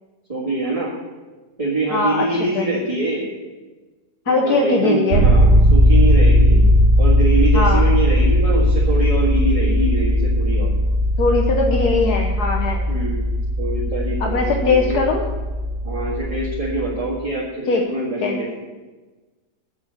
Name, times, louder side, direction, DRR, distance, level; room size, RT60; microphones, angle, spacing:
voice 1, 0.3-0.9 1.6-3.3 4.3-6.6 7.0-10.7 12.9-13.2 13.6-15.0 15.8-18.5, right 2 dB, 20° right, -6 dB, 1.9 m, -24 dB
voice 2, 1.9-2.2 2.5-2.7 4.3-5.2 7.5-7.9 11.2-12.8 14.2-15.2 17.7-17.8 18.2-18.4, left 3 dB, 70° left, 1 dB, 1.5 m, -20 dB
sound 1, 5.1-17.0, equal, 40° right, 2.3 m, -17 dB
7.8 x 7.8 x 8.4 m, 1.2 s
omnidirectional pair, 1.8 m